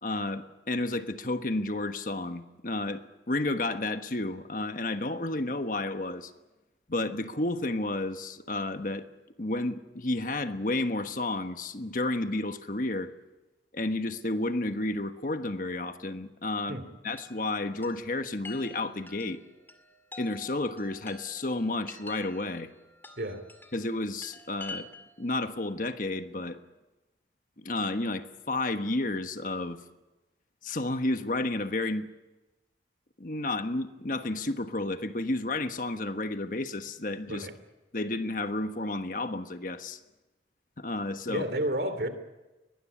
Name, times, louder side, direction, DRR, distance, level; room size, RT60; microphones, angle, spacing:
voice 1, 0.0-6.3 6.9-9.1 9.4-13.1 13.7-16.8 17.0-19.4 20.2-22.7 23.7-24.9 25.2-26.6 27.6-29.8 30.6-32.1 33.2-37.5 37.9-40.0 40.8-41.5, left 2 dB, 50° left, 8 dB, 1.3 m, -31 dB
Chime, 17.2-25.3, left 3 dB, 10° left, 2.1 m, -48 dB
voice 2, 41.3-42.1, right 1 dB, 65° right, 10 dB, 2.9 m, -31 dB
22.0 x 19.5 x 9.9 m, 1.1 s
head